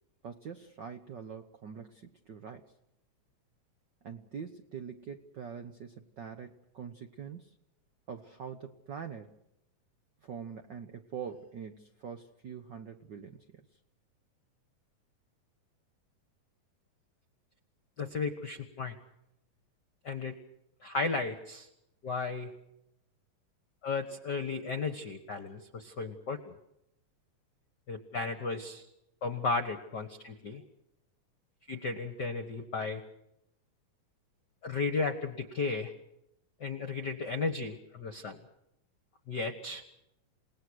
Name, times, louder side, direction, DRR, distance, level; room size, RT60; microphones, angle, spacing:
voice 1, 0.2-2.7 4.0-7.6 8.1-9.4 10.2-13.6, right 7 dB, 90° right, 7 dB, 0.9 m, -44 dB
voice 2, 18.0-18.9 20.0-20.4 20.8-21.7 22.0-22.5 23.8-26.5 27.9-28.8 29.2-30.6 31.7-33.0 34.6-35.9 36.6-38.4 39.3-39.8, left 4 dB, 45° left, 8 dB, 1.4 m, -34 dB
29.0 x 18.5 x 6.4 m, 0.83 s
omnidirectional pair, 3.7 m